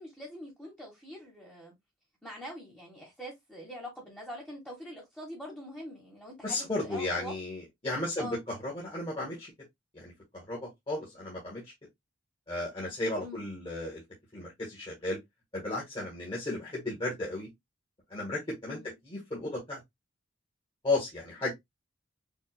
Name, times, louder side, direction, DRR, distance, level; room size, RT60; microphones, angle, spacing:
voice 1, 0.0-1.7 2.2-7.3 8.2-8.4 13.2-13.4 18.6-19.0, equal, 5° left, 1.3 m, -44 dB
voice 2, 6.4-8.3 8.6-9.5 9.9-11.6 12.5-14.0 14.3-15.2 15.5-17.5 18.1-18.8 19.0-19.8 20.8-21.5, left 2 dB, 25° left, 1.6 m, -34 dB
5.4 x 2.7 x 2.2 m
head